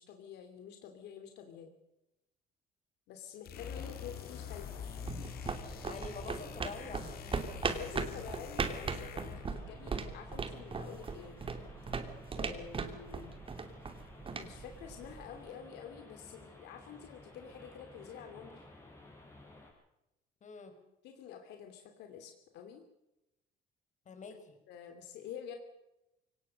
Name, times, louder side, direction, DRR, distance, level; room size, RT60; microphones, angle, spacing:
voice 1, 0.0-1.7 3.1-4.7 5.2-5.3 7.7-11.4 12.3-13.3 14.3-18.6 21.0-22.8 24.7-25.6, left 8 dB, 85° left, 5 dB, 2.9 m, -48 dB
sound 1, 3.4-9.6, left 9 dB, 65° left, 2.1 m, -46 dB
sound 2, 3.5-19.7, left 2 dB, 15° left, 7.0 m, -54 dB
sound 3, 4.6-15.4, right 4 dB, 30° right, 2.9 m, -39 dB
voice 2, 5.9-7.4 20.4-20.8 24.0-24.6, left 5 dB, 45° left, 7 dB, 5.2 m, -46 dB
23.5 x 19.0 x 6.5 m, 0.93 s
cardioid pair, 110°, 17 cm